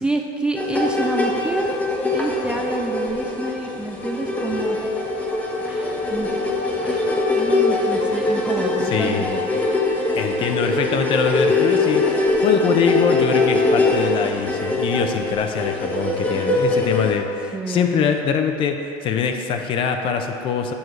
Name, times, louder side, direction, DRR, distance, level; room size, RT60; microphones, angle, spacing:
voice 1, 0.0-1.8 2.1-4.8 5.7-6.3 6.8-9.5 17.5-18.1, right 2 dB, 10° right, 2 dB, 0.3 m, -28 dB
sound 1, 0.5-17.1, left 2 dB, 15° left, 0.9 m, -22 dB
voice 2, 8.9-9.3 9.5-9.7 10.1-20.7, left 6 dB, 45° left, 5 dB, 0.5 m, -23 dB
7.1 x 6.1 x 3.2 m, 2.6 s
supercardioid pair, 120°, 12 cm